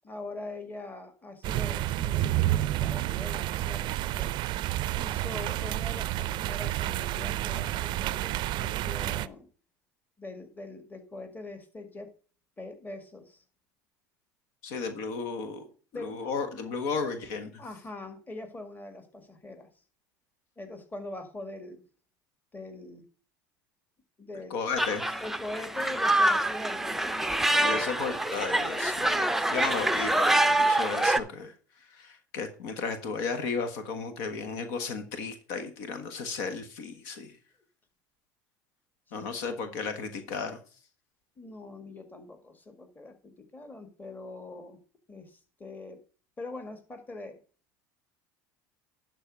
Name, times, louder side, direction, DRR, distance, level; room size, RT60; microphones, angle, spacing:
voice 1, 0.0-4.3 4.9-9.5 10.2-12.1 12.6-13.4 15.9-16.4 17.6-19.7 20.6-21.8 22.5-23.0 24.2-24.7 25.2-28.2 39.1-39.2 41.4-44.8 45.1-46.0 46.4-47.4, left 2 dB, 20° left, 7 dB, 1.9 m, -43 dB
sound 1, 1.4-9.3, right 15 dB, 55° right, 0.4 m, -30 dB
voice 2, 14.6-15.7 15.9-17.6 24.5-25.0 27.6-31.5 31.9-37.4 39.1-40.6, left 5 dB, 70° left, 8 dB, 1.4 m, -34 dB
sound 2, 24.8-31.2, right 1 dB, 5° right, 0.6 m, -26 dB
11.5 x 4.1 x 6.1 m, 0.39 s
hypercardioid pair, 85°, 10 cm